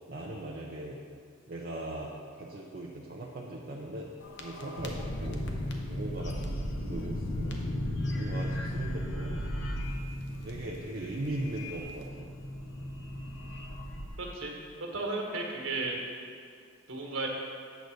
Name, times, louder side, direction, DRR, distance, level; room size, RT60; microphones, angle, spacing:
voice 1, 0.1-1.0 1.5-2.1 2.4-4.1 4.4-5.4 5.8-7.6 8.1-9.4 10.4-12.1, right 1 dB, 50° right, -3 dB, 0.6 m, -39 dB
sound 1, 4.2-14.1, left 1 dB, 55° left, 0.8 m, -36 dB
voice 2, 14.2-14.5 14.9-15.9 16.9-17.3, right 3 dB, 65° right, -1 dB, 1.5 m, -34 dB
8.1 x 4.0 x 6.4 m, 2.3 s
head